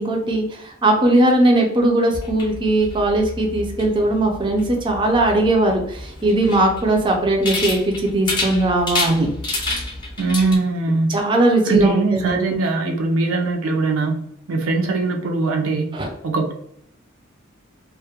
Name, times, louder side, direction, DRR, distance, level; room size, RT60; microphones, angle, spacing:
voice 1, 0.0-9.3 11.1-12.4 15.9-16.1, right 1 dB, 25° right, 1 dB, 0.3 m, -19 dB
sound 1, 2.1-10.6, left 2 dB, 20° left, 0.6 m, -29 dB
voice 2, 10.2-11.1 11.7-14.2 14.5-15.9 16.2-16.5, right 3 dB, 85° right, 2 dB, 0.4 m, -21 dB
2.2 x 2.1 x 2.8 m, 0.70 s
head